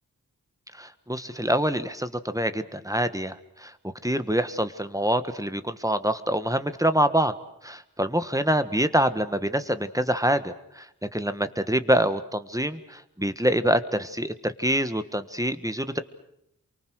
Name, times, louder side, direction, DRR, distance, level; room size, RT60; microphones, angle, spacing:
voice 1, 0.7-3.7 4.0-7.3 7.6-10.9 11.1-16.0, right 1 dB, 10° right, 11 dB, 1.5 m, -25 dB
28.5 x 24.0 x 6.4 m, 0.77 s
wide cardioid pair, 40°, 35 cm